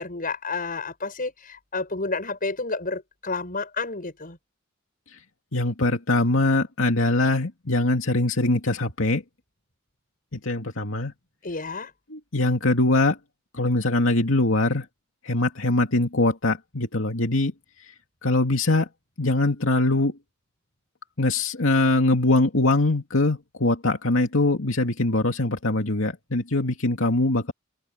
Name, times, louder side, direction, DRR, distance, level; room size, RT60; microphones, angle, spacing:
voice 1, 0.0-4.4 11.4-11.9, left 3 dB, 45° left, 6.4 m, -30 dB
voice 2, 5.5-9.2 10.3-11.1 12.1-13.2 13.5-14.9 15.2-17.5 17.8-17.9 18.2-18.9 19.2-20.2 21.2-27.5, left 2 dB, 80° left, 2.4 m, -22 dB
open air
head